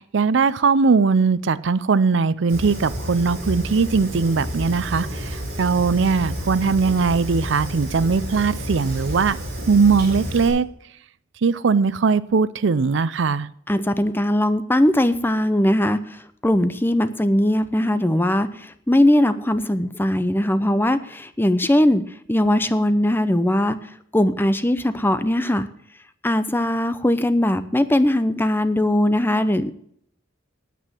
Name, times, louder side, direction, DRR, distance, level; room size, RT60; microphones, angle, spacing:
voice 1, 0.0-9.4 9.7-10.7 11.4-13.5, right 5 dB, 65° right, 0.5 m, -20 dB
Fire, 2.5-10.5, equal, 50° right, 4.3 m, -30 dB
voice 2, 13.7-16.0 16.4-22.0 22.3-23.8 24.1-25.7 26.2-29.7, left 1 dB, 10° left, 0.7 m, -20 dB
9.2 x 8.6 x 7.4 m
head